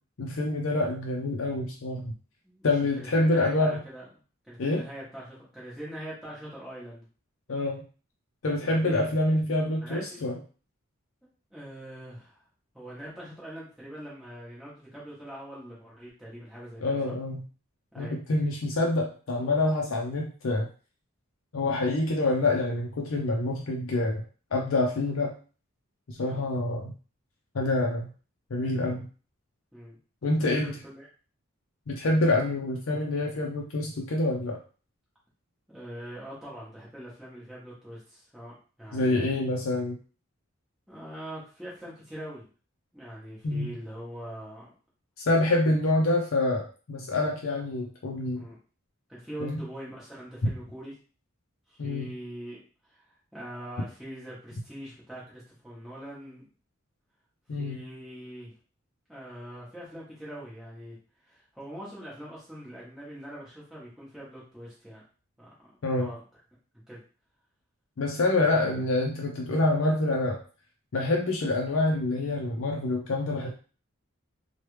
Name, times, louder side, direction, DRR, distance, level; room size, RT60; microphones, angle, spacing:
voice 1, 0.2-2.1 2.6-3.8 4.6-4.8 7.5-7.8 8.4-10.4 16.8-17.4 18.0-20.7 21.5-24.2 24.5-25.3 26.1-26.9 27.5-28.1 28.5-29.1 30.2-30.8 31.9-34.6 38.9-40.0 43.4-43.7 45.3-48.4 49.4-49.6 51.8-52.1 57.5-57.8 65.8-66.1 68.0-70.4 70.9-73.5, left 2 dB, 75° left, 0 dB, 0.5 m, -26 dB
voice 2, 2.4-4.1 4.4-7.0 8.6-9.1 9.8-10.2 11.5-12.4 12.7-17.2 17.9-18.2 26.2-26.5 29.7-30.0 30.3-30.4 30.6-31.1 35.7-39.4 40.9-42.5 42.9-44.7 48.3-48.6 49.1-50.9 51.7-56.4 57.6-58.5 59.1-61.0 61.2-65.0 65.4-65.5 65.9-66.2 66.9-67.0 68.5-68.7, equal, ahead, -8 dB, 1.0 m, -43 dB
3.1 x 2.3 x 3.1 m, 0.37 s
head